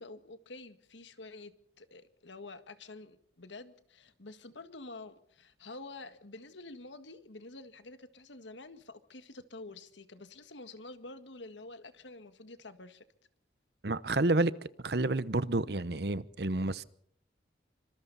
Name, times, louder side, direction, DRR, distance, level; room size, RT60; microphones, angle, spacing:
voice 1, 0.0-13.0, left 2 dB, 90° left, 1.8 m, -48 dB
voice 2, 13.8-14.5 14.8-16.8, right 2 dB, 65° right, 1.0 m, -29 dB
25.5 x 25.0 x 4.1 m
head